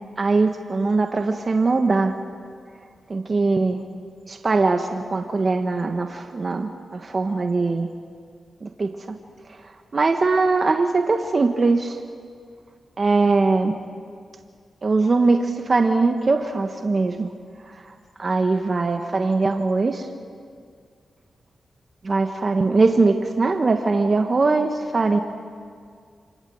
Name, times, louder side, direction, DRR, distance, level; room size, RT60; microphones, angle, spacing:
voice 1, 0.2-2.1 3.1-3.8 4.3-7.9 8.6-9.2 9.9-12.0 13.0-13.7 14.8-17.3 17.8-17.9 18.2-20.1 22.0-25.2, right 3 dB, 45° right, 5 dB, 1.5 m, -21 dB
26.0 x 21.0 x 8.0 m, 2.1 s
cardioid pair, 50°, 0 cm